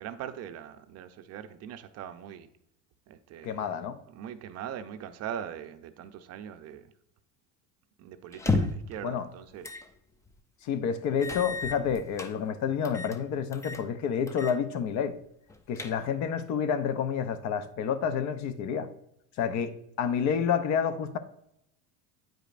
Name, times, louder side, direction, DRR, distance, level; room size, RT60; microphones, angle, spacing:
voice 1, 0.0-2.5 3.1-3.7 4.1-6.9 8.0-9.8, right 9 dB, 45° right, 0.5 m, -41 dB
voice 2, 3.4-4.0 9.0-9.3 10.6-15.2 15.7-18.9 19.4-21.2, left 7 dB, 50° left, 0.6 m, -29 dB
sound 1, 8.3-8.9 9.6-9.9 10.3-10.4 11.2-12.3 12.8-13.2 13.5-13.9 14.3-14.6 14.9-15.0 15.5-16.3, left 3 dB, 10° left, 0.3 m, -32 dB
9.0 x 5.0 x 2.5 m
supercardioid pair, 120°, 35 cm